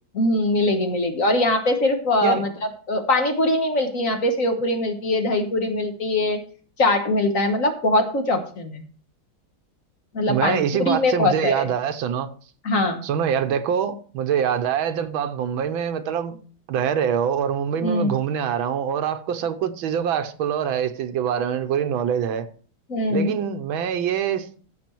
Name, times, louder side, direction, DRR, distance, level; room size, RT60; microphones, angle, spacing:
voice 1, 0.1-2.5 2.9-6.4 6.8-8.8 10.1-11.7 12.6-13.0 17.8-18.1 22.9-23.3, left 2 dB, 45° left, 1.6 m, -22 dB
voice 2, 10.2-12.3 13.0-16.4 16.7-22.5 23.1-24.5, right 8 dB, 85° right, 1.7 m, -24 dB
14.5 x 6.0 x 4.5 m
omnidirectional pair, 2.2 m